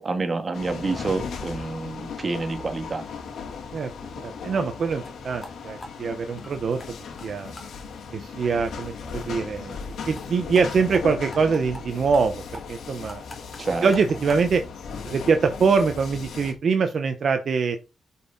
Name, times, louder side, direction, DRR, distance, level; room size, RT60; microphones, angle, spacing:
voice 1, 0.0-3.0 13.6-13.9, right 3 dB, 30° right, 1.7 m, -28 dB
sound 1, 0.5-16.5, left 5 dB, 80° left, 2.9 m, -37 dB
voice 2, 3.7-6.8 7.2-7.5 8.1-9.8 10.0-13.2 13.8-14.6 15.0-17.8, right 5 dB, 50° right, 1.0 m, -24 dB
sound 2, 5.0-5.1 5.4-5.5 5.8-6.9 7.2-7.3 7.6-7.7 8.0-8.1 8.4-8.5 8.8-8.9 9.2-9.3 9.5-9.6 9.9-10.3 10.5-10.6 10.9-11.0 11.3-11.8 12.1-12.3 12.5-14.5, left 1 dB, 20° left, 2.4 m, -42 dB
11.0 x 5.7 x 4.1 m
cardioid pair, 125°, 0 cm